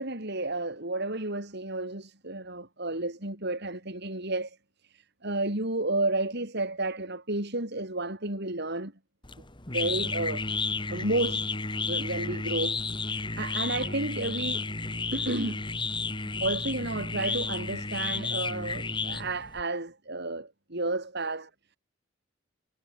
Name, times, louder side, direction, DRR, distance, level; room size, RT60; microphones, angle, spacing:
voice 1, 0.0-4.6 4.8-8.9 9.7-10.4 10.9-11.5 11.9-14.7 15.1-15.6 16.4-21.5, right 2 dB, 55° right, 5.6 m, -32 dB
sound 1, 9.2-19.6, left 4 dB, 25° left, 2.5 m, -32 dB
head